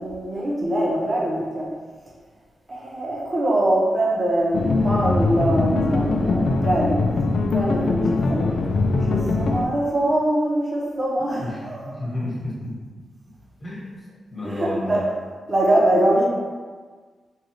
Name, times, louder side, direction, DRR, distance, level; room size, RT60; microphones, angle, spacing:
voice 1, 0.0-1.7 2.7-7.0 7.5-8.5 9.0-12.1 14.4-15.1 15.5-16.3, right 1 dB, 30° right, -4 dB, 0.9 m, -23 dB
sound 1, 4.5-9.6, left 3 dB, 65° left, 0.3 m, -22 dB
voice 2, 11.4-12.7 13.6-13.9 14.3-15.0, left 1 dB, 15° left, -8 dB, 1.4 m, -31 dB
4.8 x 2.5 x 3.1 m, 1.5 s
wide cardioid pair, 140°, 0 cm